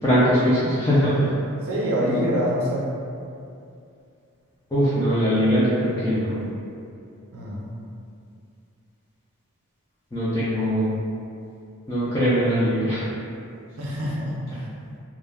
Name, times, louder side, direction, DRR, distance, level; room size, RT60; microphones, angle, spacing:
voice 1, 0.0-1.3 4.7-6.4 10.1-10.9 11.9-13.1, equal, 15° left, -11 dB, 0.3 m, -21 dB
voice 2, 1.6-2.9 7.3-7.6 13.8-14.7, equal, 70° right, -4 dB, 0.6 m, -25 dB
2.2 x 2.1 x 3.3 m, 2.5 s
head